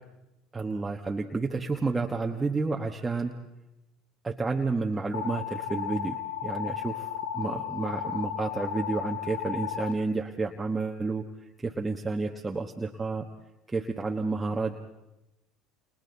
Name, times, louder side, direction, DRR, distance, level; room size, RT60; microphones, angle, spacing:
voice 1, 0.5-3.3 4.2-11.2 11.6-13.3 13.7-14.8, right 3 dB, 15° right, 2 dB, 1.4 m, -30 dB
sound 1, 5.1-9.9, left 9 dB, 85° left, 1.1 m, -34 dB
29.5 x 28.5 x 4.1 m, 0.93 s
hypercardioid pair, 80°, 0 cm